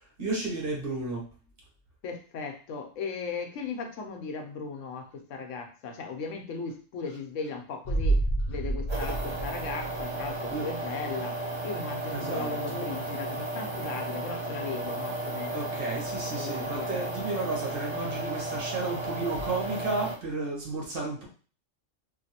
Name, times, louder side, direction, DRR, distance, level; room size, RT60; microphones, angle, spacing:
voice 1, 0.2-1.3 10.5-10.7 12.1-12.9 15.5-21.3, right 3 dB, 50° right, -2 dB, 1.1 m, -33 dB
voice 2, 2.0-8.2 8.5-15.5 16.3-17.1, left 5 dB, 75° left, 4 dB, 1.0 m, -37 dB
sound 1, 7.8-10.5 10.8-10.9, right 2 dB, 60° left, 0.4 m, -29 dB
sound 2, 8.9-20.2, right 2 dB, 30° right, 0.5 m, -34 dB
2.9 x 2.6 x 2.8 m, 0.38 s
omnidirectional pair, 1.3 m